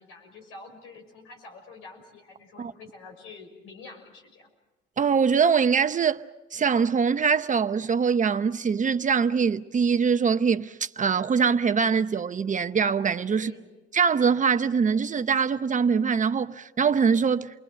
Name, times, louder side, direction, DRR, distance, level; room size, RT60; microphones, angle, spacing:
voice 1, 0.0-4.5 13.3-13.7, left 3 dB, 90° left, 6.0 m, -47 dB
voice 2, 5.0-6.2 6.5-13.5 13.9-17.5, right 6 dB, 40° right, 0.8 m, -23 dB
29.5 x 21.5 x 7.7 m
cardioid pair, 90°, 20 cm